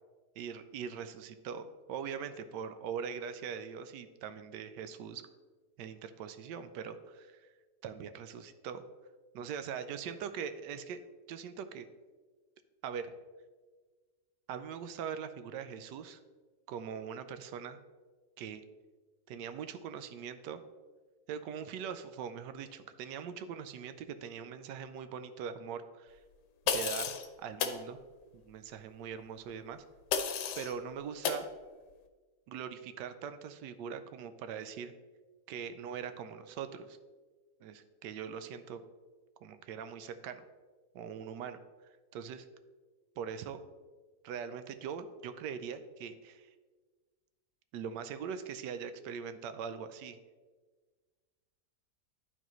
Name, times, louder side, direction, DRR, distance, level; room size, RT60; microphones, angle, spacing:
voice 1, 0.4-5.2 5.8-7.5 7.8-8.8 9.3-11.0 11.3-11.9 12.8-13.1 14.5-16.2 16.7-17.8 18.4-18.6 19.3-20.6 21.3-26.2 26.7-28.0 28.3-29.8 30.6-31.5 32.5-34.9 35.5-37.0 37.6-38.8 39.4-40.4 40.9-42.5 43.2-43.6 44.2-46.5 47.7-50.2, right 7 dB, 90° right, 10 dB, 1.2 m, -42 dB
sound 1, 26.7-27.3 27.6-27.8 30.1-30.7 31.2-31.4, left 7 dB, 85° left, 1.2 m, -32 dB
12.0 x 4.0 x 3.0 m, 1.4 s
omnidirectional pair, 1.8 m